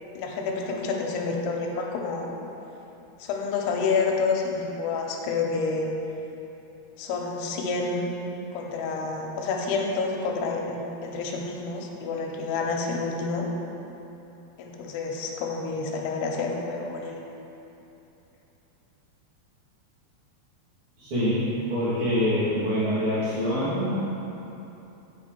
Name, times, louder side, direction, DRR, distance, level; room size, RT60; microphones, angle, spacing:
voice 1, 0.2-2.4 3.2-5.9 7.0-8.1 8.5-13.5 14.6-17.2, left 4 dB, 80° left, 0 dB, 2.8 m, -29 dB
voice 2, 21.0-24.0, equal, 50° right, -12 dB, 1.6 m, -25 dB
8.6 x 6.4 x 4.5 m, 3.0 s
omnidirectional pair, 4.9 m